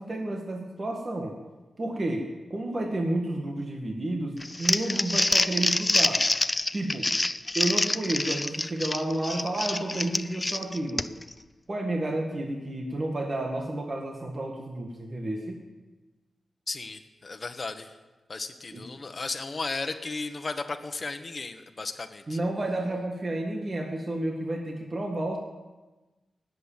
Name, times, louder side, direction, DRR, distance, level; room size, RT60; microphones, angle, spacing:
voice 1, 0.0-1.4 1.8-6.2 6.7-7.1 7.5-11.1 11.7-15.6 18.7-18.8 22.3-25.4, right 1 dB, 35° right, 1 dB, 1.9 m, -31 dB
Crumpling crinkling, 4.4-11.3, left 2 dB, 20° left, 0.5 m, -26 dB
voice 2, 16.7-17.9 18.3-22.4, left 3 dB, 40° left, 7 dB, 1.2 m, -35 dB
19.0 x 8.2 x 7.4 m, 1.2 s
wide cardioid pair, 95°, 0 cm